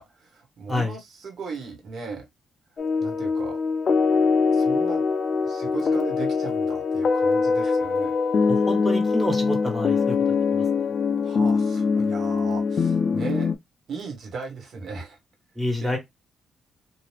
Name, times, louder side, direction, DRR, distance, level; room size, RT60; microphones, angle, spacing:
voice 1, 0.0-2.3 3.0-3.6 4.5-5.0 5.4-8.1 11.2-13.5 13.9-15.2 15.8-16.0, right 4 dB, 60° right, 1.1 m, -36 dB
sound 1, 2.8-13.5, left 5 dB, 45° left, 0.4 m, -23 dB
voice 2, 8.5-10.6 15.5-16.0, left 1 dB, ahead, 1.3 m, -28 dB
2.9 x 2.3 x 3.3 m
cardioid pair, 115°, 0 cm